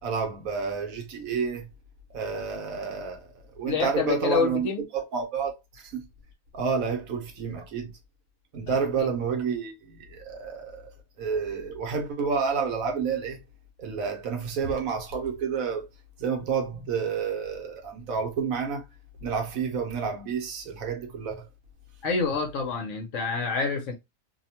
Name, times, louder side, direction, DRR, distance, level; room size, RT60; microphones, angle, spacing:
voice 1, 0.0-1.7 2.1-6.0 6.5-7.9 8.5-13.4 13.8-15.9 16.2-18.9 19.2-21.5, right 5 dB, 70° right, 1.1 m, -30 dB
voice 2, 3.7-4.8 8.7-9.1 22.0-23.9, left 4 dB, 65° left, 0.9 m, -28 dB
2.7 x 2.1 x 2.7 m
omnidirectional pair, 1.6 m